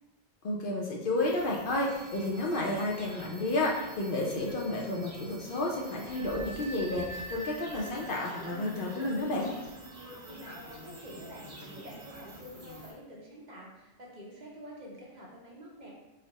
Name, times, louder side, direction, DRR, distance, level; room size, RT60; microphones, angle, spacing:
voice 1, 0.4-9.5, left 2 dB, 60° left, -2 dB, 0.7 m, -31 dB
sound 1, 1.2-12.9, equal, 70° right, 1.5 m, -48 dB
sound 2, 1.9-12.4, right 1 dB, 90° right, 0.9 m, -49 dB
voice 2, 10.3-15.9, equal, 45° right, -3 dB, 0.8 m, -48 dB
4.1 x 2.0 x 4.0 m, 1.1 s
omnidirectional pair, 1.1 m